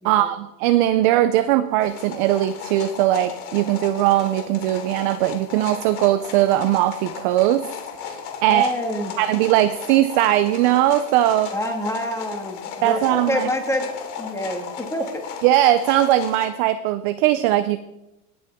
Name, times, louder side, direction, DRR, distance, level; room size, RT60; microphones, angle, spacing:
voice 1, 0.0-7.7 8.0-8.7 9.2-11.5 12.8-13.5 15.4-17.8, right 13 dB, 35° right, 12 dB, 0.4 m, -19 dB
sound 1, 1.8-16.5, left 7 dB, 70° left, 2.8 m, -36 dB
voice 2, 8.4-9.1 11.5-15.2, equal, 5° left, 2 dB, 1.8 m, -27 dB
18.5 x 8.7 x 3.5 m, 0.94 s
supercardioid pair, 145°, 46 cm